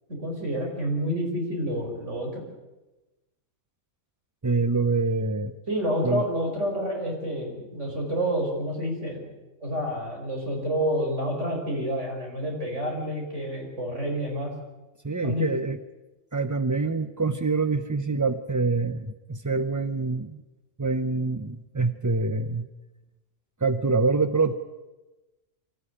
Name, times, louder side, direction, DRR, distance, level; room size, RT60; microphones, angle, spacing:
voice 1, 0.1-2.4 5.7-9.3 9.6-14.5 15.2-15.5, equal, 55° right, 0 dB, 5.6 m, -29 dB
voice 2, 4.4-5.5 6.0-6.2 15.0-15.8 16.3-20.4 20.8-22.7 23.6-24.5, right 3 dB, 25° right, 9 dB, 0.4 m, -25 dB
24.5 x 14.0 x 10.0 m, 1.1 s
omnidirectional pair, 1.4 m